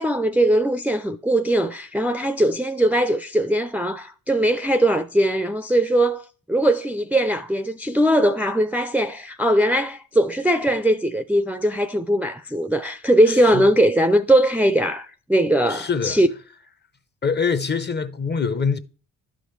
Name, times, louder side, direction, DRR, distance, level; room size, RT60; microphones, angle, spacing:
voice 1, 0.0-16.3, right 1 dB, 5° right, 0.4 m, -20 dB
voice 2, 13.3-13.6 15.7-16.2 17.2-18.8, left 5 dB, 30° left, 0.7 m, -24 dB
11.5 x 5.1 x 3.2 m
supercardioid pair, 60°, 35 cm